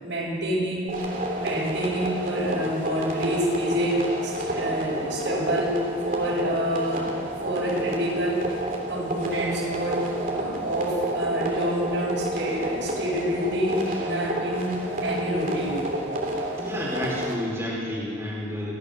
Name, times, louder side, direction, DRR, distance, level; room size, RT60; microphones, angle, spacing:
voice 1, 0.0-0.9 1.4-5.8 6.0-7.1 7.4-8.6 8.9-15.8, equal, 70° right, -5 dB, 7.8 m, -27 dB
sound 1, 0.9-17.3, right 1 dB, 45° right, 3.5 m, -30 dB
voice 2, 16.6-18.7, equal, 15° right, -6 dB, 4.3 m, -30 dB
30.0 x 14.0 x 6.6 m, 2.2 s
head